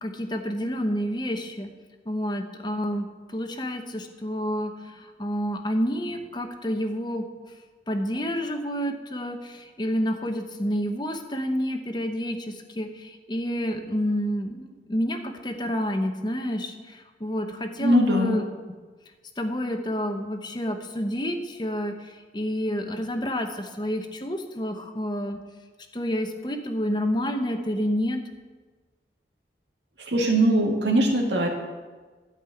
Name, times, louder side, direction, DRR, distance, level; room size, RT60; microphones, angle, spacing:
voice 1, 0.0-1.7 2.1-3.1 3.3-7.2 7.9-18.4 19.4-21.9 22.3-25.4 25.9-28.2, equal, 25° left, 5 dB, 0.9 m, -29 dB
voice 2, 17.8-18.4 30.0-31.5, right 1 dB, 85° right, 0 dB, 2.1 m, -21 dB
12.5 x 5.5 x 8.4 m, 1.4 s
head